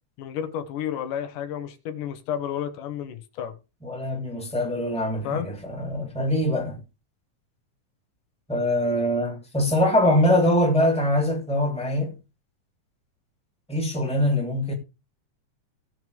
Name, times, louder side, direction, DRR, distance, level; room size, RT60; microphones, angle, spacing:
voice 1, 0.2-3.6 5.2-5.5, left 9 dB, 80° left, 2.8 m, -31 dB
voice 2, 3.8-6.8 8.5-12.1 13.7-14.7, left 1 dB, ahead, 2.7 m, -23 dB
17.5 x 6.3 x 3.5 m
omnidirectional pair, 3.6 m